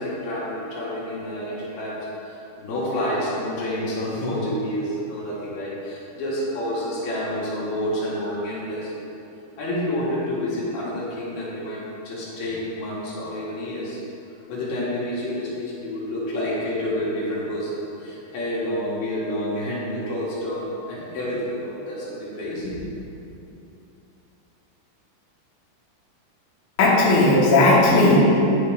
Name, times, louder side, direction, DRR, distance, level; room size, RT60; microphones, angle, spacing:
voice 1, 0.0-9.1 9.6-14.0 14.5-22.8, left 1 dB, 80° left, -7 dB, 3.4 m, -29 dB
voice 2, 26.8-28.2, left 2 dB, 65° left, -6 dB, 2.5 m, -16 dB
10.5 x 3.7 x 4.9 m, 2.8 s
omnidirectional pair, 4.4 m